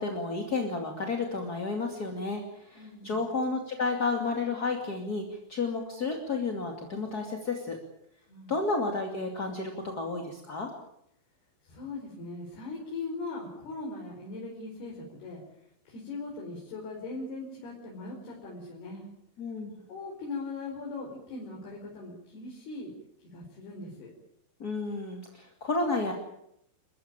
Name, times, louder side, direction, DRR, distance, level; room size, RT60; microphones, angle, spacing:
voice 1, 0.0-7.8 8.5-10.7 19.4-19.7 24.6-26.1, left 3 dB, 30° left, 2 dB, 2.0 m, -31 dB
voice 2, 2.7-3.2 8.3-8.5 11.6-15.4 15.8-19.0 19.9-22.9 23.3-24.1, left 3 dB, 55° left, -2 dB, 6.8 m, -40 dB
30.0 x 15.0 x 9.0 m, 0.77 s
omnidirectional pair, 5.4 m